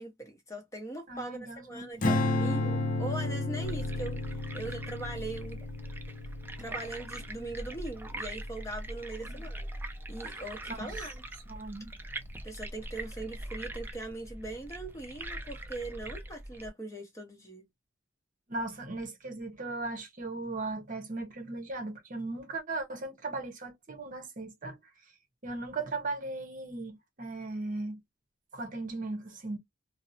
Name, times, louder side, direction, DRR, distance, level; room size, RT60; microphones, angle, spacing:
voice 1, 0.0-5.6 6.6-9.7 10.1-11.2 12.4-17.7, right 2 dB, 15° left, 0.8 m, -41 dB
voice 2, 1.1-2.1 9.2-9.4 10.2-11.1 11.5-11.9 18.5-24.8 25.1-25.2 25.4-28.0 28.5-29.6, right 2 dB, 40° right, 0.8 m, -38 dB
Strum, 2.0-8.4, left 2 dB, 40° left, 0.6 m, -32 dB
sound 1, 3.6-16.7, right 1 dB, 10° right, 0.3 m, -41 dB
2.6 x 2.0 x 2.6 m
head